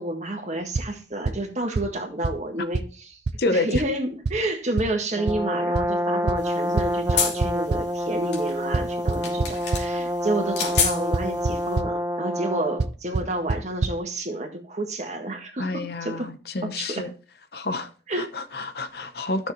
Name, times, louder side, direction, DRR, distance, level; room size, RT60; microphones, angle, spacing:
voice 1, 0.0-3.2 3.5-16.3 16.6-17.1 18.1-18.3, right 2 dB, 40° right, 1.7 m, -30 dB
sound 1, 0.7-0.9 1.3-1.4 1.8-1.9 2.2-2.3 2.7-2.8 3.3-3.4 3.7-3.8 4.2-4.3 4.8-4.9 5.3-5.4 5.7-5.8 6.3-6.4 6.8-7.8 8.7-9.8 10.8-10.9 11.1-11.5 11.8-11.9 12.8-12.9 13.1-13.2 13.5-13.6 13.8-13.9, right 4 dB, 65° right, 0.5 m, -23 dB
voice 2, 3.4-3.8 15.6-17.1 17.5-17.9 18.2-19.5, left 2 dB, 60° left, 0.9 m, -28 dB
Brass instrument, 5.1-12.9, equal, 15° right, 0.6 m, -27 dB
sound 2, 6.4-11.8, left 7 dB, 75° left, 2.7 m, -31 dB
13.0 x 6.5 x 3.1 m
head